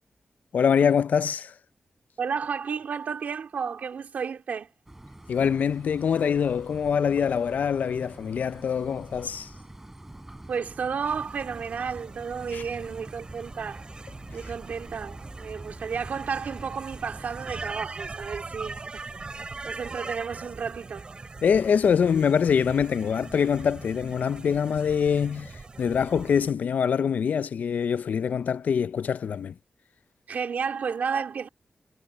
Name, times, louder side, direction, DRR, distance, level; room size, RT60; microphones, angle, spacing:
voice 1, 0.5-1.5 5.3-9.5 12.5-12.6 21.4-29.5, left 7 dB, 90° left, 0.5 m, -24 dB
voice 2, 2.2-4.7 10.5-13.8 14.3-21.1 30.3-31.5, right 6 dB, 85° right, 2.7 m, -32 dB
sound 1, 4.9-17.8, right 1 dB, 15° right, 4.3 m, -45 dB
sound 2, 11.0-26.5, right 3 dB, 35° right, 5.9 m, -41 dB
wide cardioid pair, 140°, 3 cm